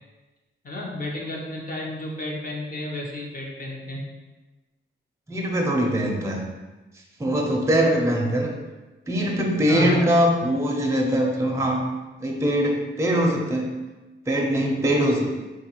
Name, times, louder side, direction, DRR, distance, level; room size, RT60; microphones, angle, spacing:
voice 1, 0.6-4.0 9.7-10.0, left 1 dB, 45° left, -2 dB, 0.7 m, -31 dB
voice 2, 5.3-6.4 7.2-8.5 9.1-11.8 12.2-13.7 14.3-15.3, equal, 15° right, 0 dB, 0.5 m, -22 dB
3.9 x 2.4 x 2.9 m, 1.2 s
wide cardioid pair, 100°, 20 cm